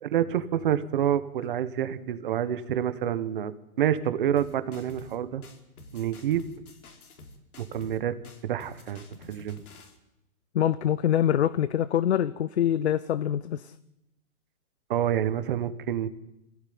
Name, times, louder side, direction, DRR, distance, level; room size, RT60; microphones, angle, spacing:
voice 1, 0.0-3.5 3.8-5.4 5.9-6.5 7.6-8.2 8.4-9.6 14.9-16.1, right 10 dB, 35° right, 12 dB, 1.5 m, -28 dB
sound 1, 4.4-5.2 5.4-8.0 8.2-10.0, left 2 dB, 80° left, 4.8 m, -49 dB
voice 2, 10.5-13.7, left 10 dB, 50° left, 16 dB, 0.8 m, -25 dB
25.5 x 16.0 x 9.6 m, 0.92 s
hypercardioid pair, 170°, 43 cm